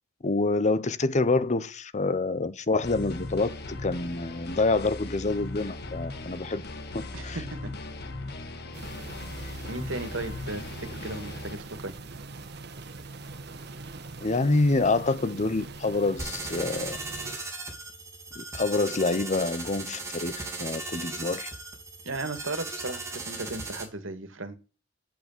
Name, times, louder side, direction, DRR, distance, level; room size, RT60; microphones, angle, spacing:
voice 1, 0.2-6.6 6.9-7.4 14.2-17.0 18.4-21.5, left 3 dB, 40° left, 0.8 m, -27 dB
sound 1, 2.8-11.5, left 2 dB, 60° left, 1.6 m, -38 dB
voice 2, 7.1-7.7 9.7-12.0 22.0-24.6, right 2 dB, 85° right, 2.0 m, -36 dB
sound 2, 8.7-17.4, right 3 dB, 60° right, 1.3 m, -42 dB
sound 3, 16.2-23.8, right 3 dB, 15° right, 3.6 m, -37 dB
8.6 x 8.2 x 7.3 m
head